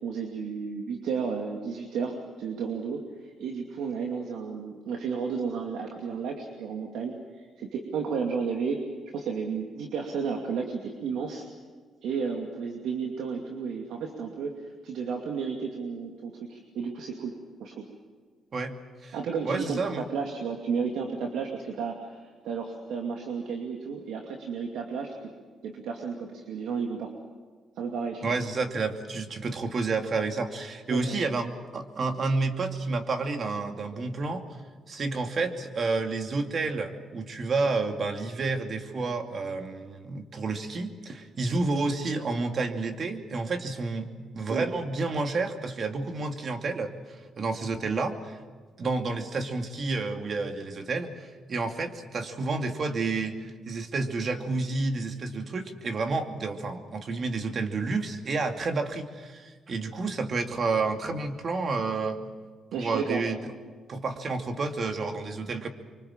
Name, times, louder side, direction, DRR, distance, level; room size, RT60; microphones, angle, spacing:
voice 1, 0.0-8.8 9.1-11.4 12.0-17.3 17.6-17.8 19.1-25.3 25.6-27.1 27.8-28.2 30.9-31.1 44.5-44.7 62.7-63.2, right 5 dB, 80° right, 2 dB, 2.5 m, -33 dB
voice 2, 19.4-20.0 28.2-34.4 34.9-46.9 47.4-48.4 48.8-62.2 62.8-63.5 63.9-65.7, right 3 dB, 45° right, 5 dB, 2.6 m, -30 dB
25.0 x 24.5 x 7.4 m, 1.5 s
cardioid pair, 90°, 0 cm